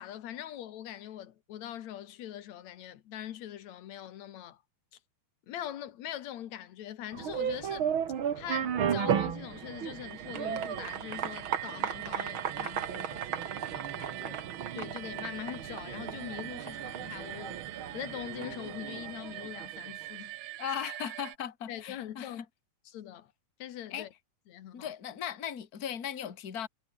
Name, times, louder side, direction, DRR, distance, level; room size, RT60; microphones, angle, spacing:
voice 1, 0.0-4.6 5.5-7.9 8.4-14.4 14.7-17.6 17.9-20.4 21.7-22.4 22.9-23.3 23.6-24.1 24.5-24.9, left 11 dB, 70° left, 2.6 m, -42 dB
sound 1, 7.1-19.9, right 8 dB, 50° right, 2.2 m, -35 dB
sound 2, 9.2-21.4, right 17 dB, 90° right, 2.1 m, -44 dB
voice 2, 20.6-22.5 23.9-24.1 24.7-26.7, left 9 dB, 35° left, 2.1 m, -37 dB
omnidirectional pair, 3.3 m